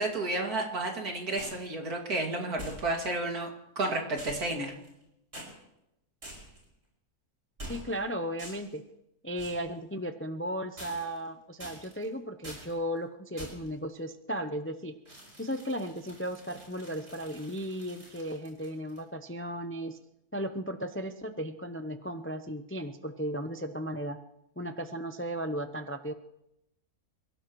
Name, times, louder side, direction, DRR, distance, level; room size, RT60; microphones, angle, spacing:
voice 1, 0.0-3.5 3.8-4.7, right 2 dB, 85° right, 1 dB, 2.9 m, -31 dB
sound 1, 1.4-1.7 2.6-3.2 4.2-5.0 5.3-5.5 6.2-6.7 7.6-8.0 8.4-8.8 9.4-9.7 10.8-11.3 11.6-12.1 12.4-12.7 13.4-13.7 15.1-19.0, equal, 55° right, 6.3 m, -46 dB
voice 2, 7.6-8.8 9.2-14.9 15.4-20.0 20.3-24.2 24.6-26.1, equal, 20° left, 8 dB, 0.3 m, -35 dB
28.0 x 16.5 x 3.1 m, 0.85 s
omnidirectional pair, 1.5 m